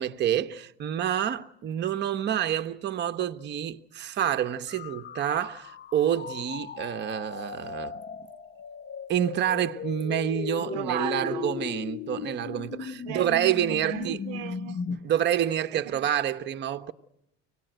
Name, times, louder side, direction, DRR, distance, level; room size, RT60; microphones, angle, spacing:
voice 1, 0.0-8.0 9.1-14.2 14.9-16.9, right 10 dB, 30° right, 0.9 m, -28 dB
sound 1, 4.7-15.0, left 7 dB, 30° left, 0.9 m, -37 dB
voice 2, 10.6-11.5 13.0-13.3 13.7-14.9 15.7-16.1, right 12 dB, 75° right, 0.8 m, -35 dB
24.5 x 18.5 x 9.0 m
cardioid pair, 140°, 34 cm